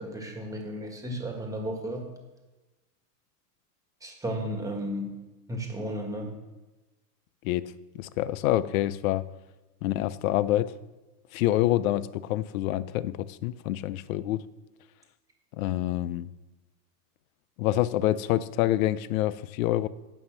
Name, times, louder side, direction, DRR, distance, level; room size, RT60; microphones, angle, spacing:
voice 1, 0.0-2.0 4.0-5.2 5.5-6.4, equal, 5° right, 2 dB, 1.7 m, -34 dB
voice 2, 7.4-9.3 9.8-10.8 11.3-14.5 15.6-16.3 17.6-19.9, left 14 dB, 60° left, 18 dB, 0.6 m, -27 dB
9.1 x 5.6 x 7.4 m, 1.1 s
supercardioid pair, 135°, 47 cm